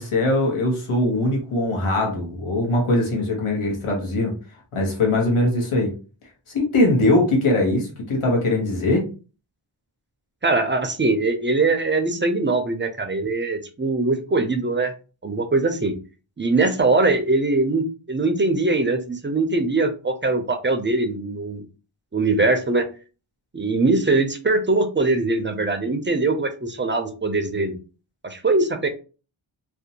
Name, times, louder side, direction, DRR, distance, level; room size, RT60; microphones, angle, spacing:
voice 1, 0.0-4.3 4.7-5.9 6.5-9.0, left 2 dB, 85° left, -1 dB, 1.0 m, -21 dB
voice 2, 10.4-14.9 15.2-15.9 16.4-21.6 22.1-22.9 23.5-27.8 28.2-28.9, right 3 dB, 25° right, 6 dB, 0.3 m, -22 dB
2.6 x 2.1 x 2.7 m, 0.34 s
wide cardioid pair, 95°, 49 cm